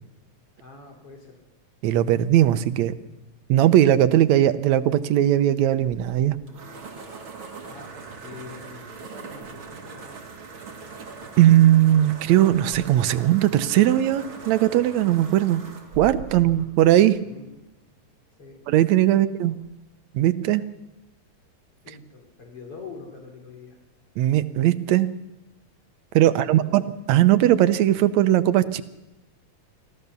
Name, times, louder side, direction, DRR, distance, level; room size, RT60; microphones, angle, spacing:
voice 1, 0.6-1.4 7.7-10.2 17.2-17.5 18.4-18.6 19.1-19.6 21.8-23.8 26.3-26.8, left 4 dB, 50° left, 2 dB, 4.0 m, -44 dB
voice 2, 1.8-2.9 3.5-6.4 11.4-15.6 16.0-17.2 18.7-19.5 20.1-20.6 24.2-25.1 26.1-28.8, right 13 dB, 75° right, 12 dB, 2.0 m, -19 dB
sound 1, 5.8-17.6, right 4 dB, 45° right, 2.9 m, -41 dB
25.0 x 15.0 x 6.9 m, 0.98 s
omnidirectional pair, 3.3 m